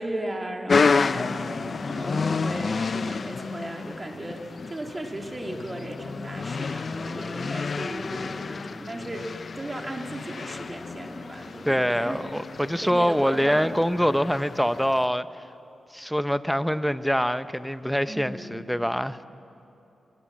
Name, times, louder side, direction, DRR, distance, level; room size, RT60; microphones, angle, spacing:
voice 1, 0.0-9.3 9.6-12.2 12.8-13.7 18.1-18.6, right 1 dB, 20° right, 2.4 m, -36 dB
sound 1, 0.7-15.1, left 4 dB, 50° left, 0.4 m, -30 dB
voice 2, 11.6-15.3 15.9-19.2, equal, ahead, 0.6 m, -24 dB
22.5 x 18.5 x 7.4 m
wide cardioid pair, 95°, 0 cm